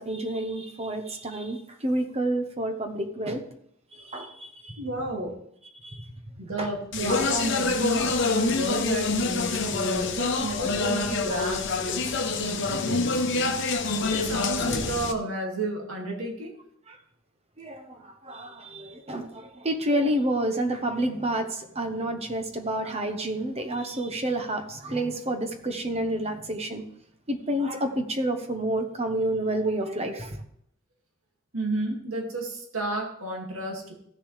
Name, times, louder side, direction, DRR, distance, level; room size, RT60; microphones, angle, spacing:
voice 1, 0.0-3.4 3.9-4.8 5.8-6.0 6.6-6.7 11.4-11.5 16.9-17.0 17.6-26.8 27.3-30.4, right 1 dB, 30° right, 6 dB, 1.1 m, -29 dB
voice 2, 4.8-5.4 6.4-13.2 14.1-16.5 31.5-33.9, right 2 dB, 85° right, 0 dB, 2.4 m, -32 dB
Speech, 6.9-15.1, left 3 dB, 60° left, 0.9 m, -26 dB
15.0 x 6.8 x 3.4 m, 0.69 s
head